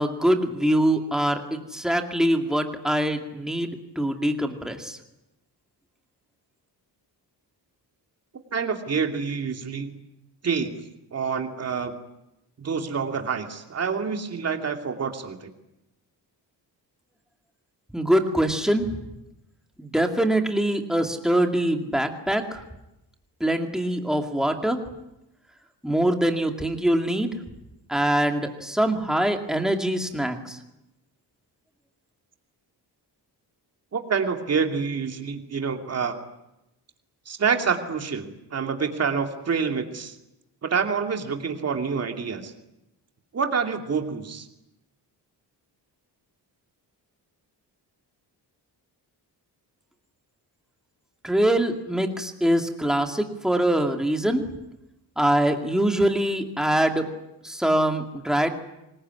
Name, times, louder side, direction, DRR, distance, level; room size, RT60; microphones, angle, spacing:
voice 1, 0.0-5.0 17.9-19.0 19.8-22.6 23.4-24.8 25.8-27.3 27.9-30.6 51.2-54.4 55.2-57.1 57.4-58.5, right 1 dB, ahead, 4 dB, 2.4 m, -23 dB
voice 2, 8.5-9.9 10.4-10.7 11.1-11.9 12.6-15.5 33.9-36.2 37.3-40.1 40.6-42.5 43.3-44.5, right 5 dB, 40° right, 5 dB, 2.7 m, -27 dB
25.0 x 21.5 x 9.7 m, 0.90 s
wide cardioid pair, 165°, 40 cm